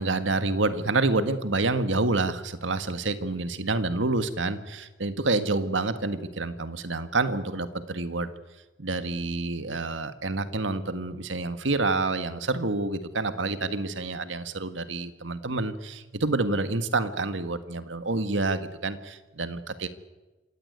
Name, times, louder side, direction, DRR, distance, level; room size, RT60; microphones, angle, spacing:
voice 1, 0.0-8.3 8.8-19.9, right 3 dB, 85° right, 10 dB, 1.7 m, -28 dB
27.0 x 16.5 x 9.6 m, 1.1 s
head